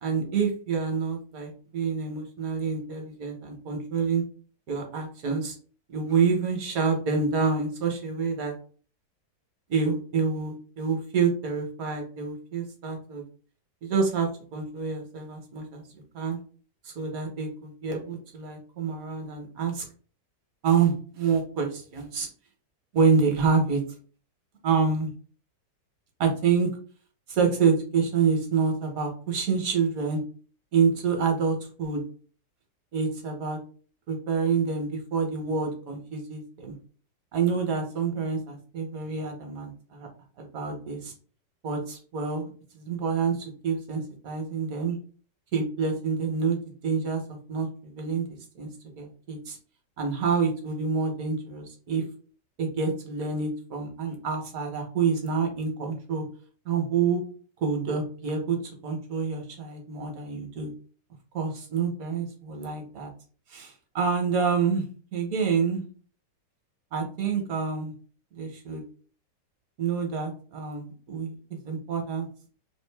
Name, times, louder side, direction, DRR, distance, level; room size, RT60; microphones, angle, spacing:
voice 1, 0.0-4.2 4.7-5.5 5.9-8.5 9.7-13.2 13.8-15.8 16.1-16.4 16.8-19.8 20.6-22.3 22.9-23.8 24.6-25.1 26.2-26.7 27.3-30.2 30.7-32.0 32.9-33.6 34.1-36.7 37.3-40.1 40.4-41.1 41.6-42.5 42.7-45.0 45.5-48.2 48.6-48.7 49.0-49.6 50.0-52.0 52.6-56.2 56.6-57.2 57.6-58.6 58.8-60.7 61.3-63.1 63.5-64.8 65.1-65.8 66.9-67.9 68.3-68.8 69.8-71.3 71.6-72.3, right 5 dB, 60° right, 3 dB, 1.2 m, -27 dB
3.2 x 2.5 x 3.3 m, 0.41 s
omnidirectional pair, 1.9 m